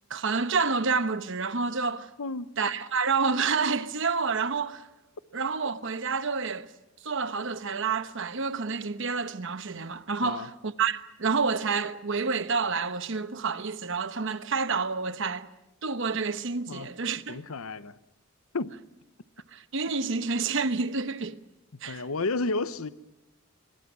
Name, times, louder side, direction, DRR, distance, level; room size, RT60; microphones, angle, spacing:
voice 1, 0.1-2.1 2.6-4.9 5.3-6.7 7.0-15.5 15.8-17.4 19.5-21.4 21.8-22.0, right 4 dB, 60° right, 1.0 m, -29 dB
voice 2, 2.2-2.5 10.2-10.5 16.7-16.9 17.3-18.0 18.5-18.7 21.7-22.9, left 3 dB, 90° left, 0.9 m, -32 dB
25.5 x 23.5 x 6.2 m
head